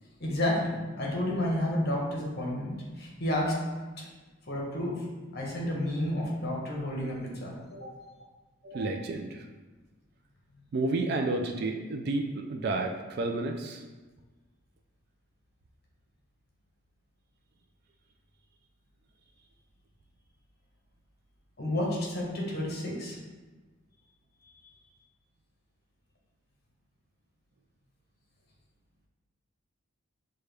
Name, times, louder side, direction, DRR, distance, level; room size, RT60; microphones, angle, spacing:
voice 1, 0.2-3.5 4.0-4.1 4.5-5.0 5.3-7.9 8.7-8.9 21.6-23.2 24.6-24.7, left 1 dB, 50° left, -2 dB, 1.0 m, -31 dB
voice 2, 8.7-9.4 10.7-13.8, right 2 dB, 50° right, 2 dB, 0.3 m, -31 dB
6.4 x 2.2 x 3.3 m, 1.3 s
head